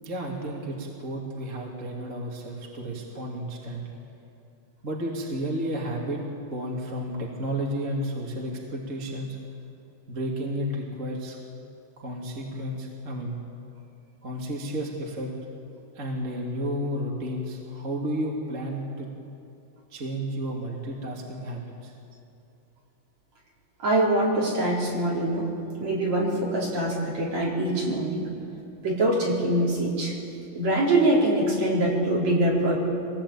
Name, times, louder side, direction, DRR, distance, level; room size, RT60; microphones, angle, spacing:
voice 1, 0.0-3.9 4.8-6.2 6.5-9.4 10.1-11.4 12.0-13.4 14.2-15.3 15.9-19.1 19.9-21.9, equal, 25° right, -2 dB, 2.0 m, -32 dB
voice 2, 23.8-25.5 25.8-28.3 28.8-30.1 30.5-32.8, right 1 dB, 40° right, -4 dB, 5.1 m, -24 dB
25.0 x 19.5 x 8.7 m, 2.6 s
omnidirectional pair, 5.0 m